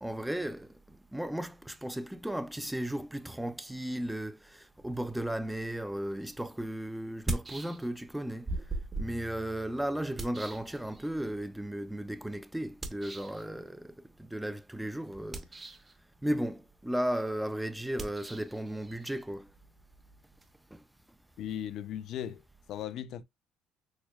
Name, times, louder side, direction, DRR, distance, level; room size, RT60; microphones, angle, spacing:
voice 1, 0.0-8.5 9.0-15.5 16.2-19.5 20.7-20.8, right 1 dB, 5° right, 0.3 m, -35 dB
sound 1, 6.1-6.2 7.1-8.1 8.4-11.3 12.8-13.4 15.2-16.0 17.9-20.5, right 2 dB, 20° right, 0.7 m, -40 dB
voice 2, 21.4-22.4 22.7-23.2, left 10 dB, 65° left, 0.4 m, -37 dB
6.2 x 2.1 x 2.2 m
cardioid pair, 100°, 0 cm